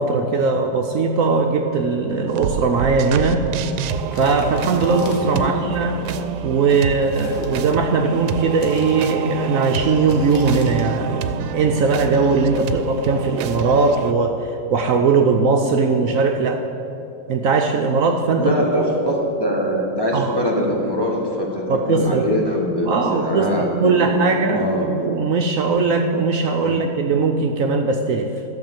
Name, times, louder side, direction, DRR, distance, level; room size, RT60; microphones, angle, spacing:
voice 1, 0.0-3.5 4.1-6.0 6.4-16.6 17.3-18.5 20.1-20.4 21.7-22.3 22.8-28.3, right 4 dB, 65° right, 3 dB, 1.0 m, -19 dB
sound 1, 2.3-14.1, right 8 dB, 90° right, 1.2 m, -28 dB
sound 2, 4.1-5.4 7.0-7.8 8.3-9.2 10.1-10.9, left 3 dB, 70° left, 1.7 m, -37 dB
voice 2, 18.4-24.9 26.6-26.8, equal, 15° left, -2 dB, 1.3 m, -22 dB
13.5 x 5.9 x 7.3 m, 2.9 s
omnidirectional pair, 1.7 m